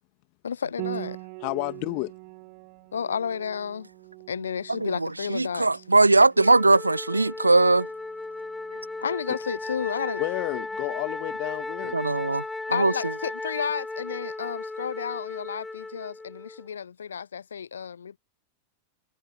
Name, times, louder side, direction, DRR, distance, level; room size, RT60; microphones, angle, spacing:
voice 1, 0.4-1.2 2.9-3.9 4.3-5.7 9.0-10.2 11.8-11.9 12.7-18.2, left 7 dB, 70° left, 0.8 m, -32 dB
Piano, 0.8-10.1, right 39 dB, 45° right, 1.9 m, -43 dB
voice 2, 1.4-2.1 10.2-12.0, left 40 dB or more, 45° left, 2.5 m, -31 dB
voice 3, 4.7-7.9 11.9-12.9, right 2 dB, 80° right, 0.8 m, -20 dB
Wind instrument woodwind instrument, 6.4-16.7, left 2 dB, 10° left, 0.6 m, -36 dB
figure-of-eight pair, 90°, 0 cm